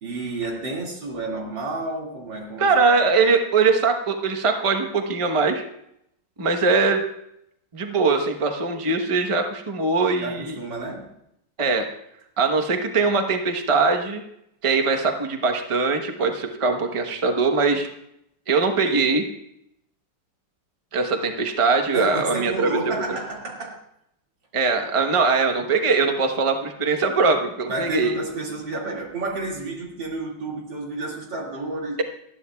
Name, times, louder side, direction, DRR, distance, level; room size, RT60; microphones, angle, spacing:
voice 1, 0.0-2.7 10.2-11.1 21.9-23.8 27.7-32.0, right 2 dB, 85° right, -1 dB, 3.0 m, -30 dB
voice 2, 2.6-5.6 6.4-7.0 7.7-10.5 11.6-11.8 12.4-14.2 14.6-17.9 18.5-19.2 20.9-23.0 24.5-28.1, right 4 dB, 25° right, 5 dB, 0.9 m, -21 dB
19.0 x 13.5 x 2.3 m, 0.76 s
omnidirectional pair, 1.9 m